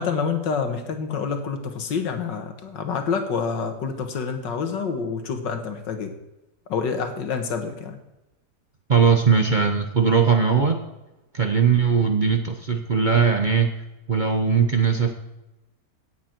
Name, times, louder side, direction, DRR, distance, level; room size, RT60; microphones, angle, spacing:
voice 1, 0.0-6.2 6.7-8.0, left 5 dB, 85° left, 6 dB, 2.0 m, -27 dB
voice 2, 8.9-10.8 11.3-13.7 14.1-15.1, right 6 dB, 40° right, 4 dB, 0.7 m, -19 dB
17.0 x 8.2 x 4.4 m, 0.97 s
omnidirectional pair, 1.9 m